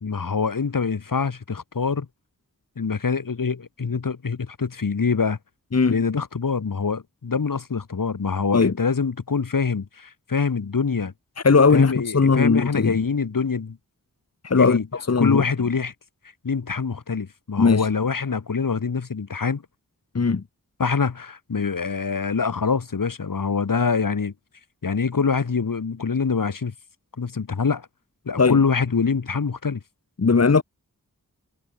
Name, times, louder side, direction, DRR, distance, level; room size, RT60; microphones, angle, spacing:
voice 1, 0.0-2.1 2.8-5.4 5.9-11.1 11.7-13.8 14.5-14.9 15.2-15.9 16.4-19.6 20.8-24.3 24.8-26.7 27.2-27.9 28.2-29.8, left 5 dB, 70° left, 1.6 m, -25 dB
voice 2, 11.4-13.0 14.4-15.4 17.6-17.9 20.1-20.4 28.4-28.6 30.2-30.6, left 4 dB, 50° left, 1.2 m, -18 dB
wide cardioid pair, 50°, 34 cm